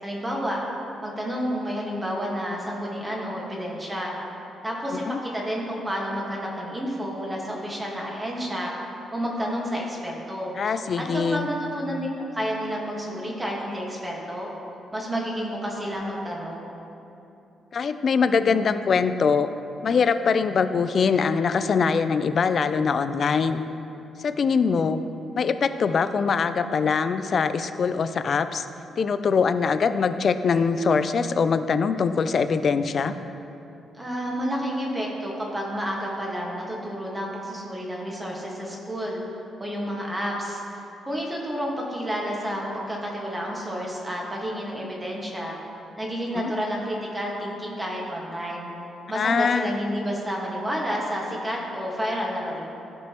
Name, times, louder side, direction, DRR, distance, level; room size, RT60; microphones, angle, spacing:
voice 1, 0.0-0.6 1.0-4.1 4.6-8.7 9.1-10.5 11.0-14.5 14.9-16.8 34.0-39.2 39.6-40.6 41.0-45.6 46.0-48.7 49.1-52.7, equal, 15° right, -2 dB, 1.5 m, -30 dB
voice 2, 10.6-11.5 17.7-19.5 19.8-23.6 24.2-25.0 25.4-28.7 29.0-33.1 46.3-46.5 49.1-49.7, left 5 dB, 45° left, 11 dB, 0.3 m, -23 dB
14.5 x 5.4 x 3.0 m, 2.8 s
cardioid pair, 130°, 0 cm